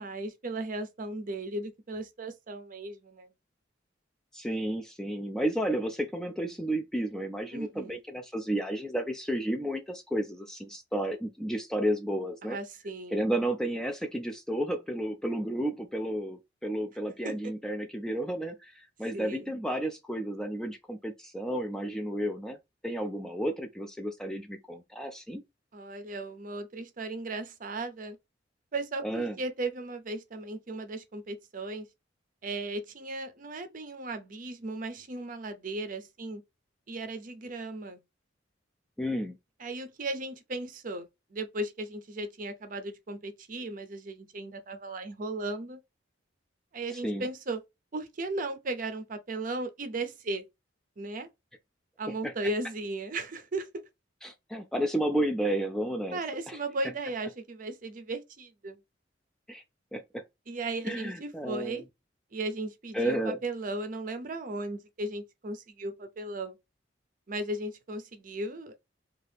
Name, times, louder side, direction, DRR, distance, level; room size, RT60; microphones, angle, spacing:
voice 1, 0.0-3.3 7.5-8.0 12.4-13.2 17.2-17.3 19.1-19.5 25.7-28.2 28.7-31.9 32.4-36.4 36.9-38.0 39.6-45.8 46.7-47.6 47.9-50.4 51.0-51.3 52.0-53.8 56.1-58.8 60.5-61.8 62.3-66.6 67.3-68.8, right 2 dB, 45° right, 0.6 m, -36 dB
voice 2, 4.3-12.6 13.1-22.6 22.8-25.4 29.0-29.4 39.0-39.3 46.9-47.3 52.2-52.3 54.2-56.2 56.5-56.6 59.5-59.6 59.9-60.2 60.8-61.8 62.9-63.4, right 1 dB, 5° left, 0.3 m, -32 dB
2.7 x 2.4 x 3.3 m
head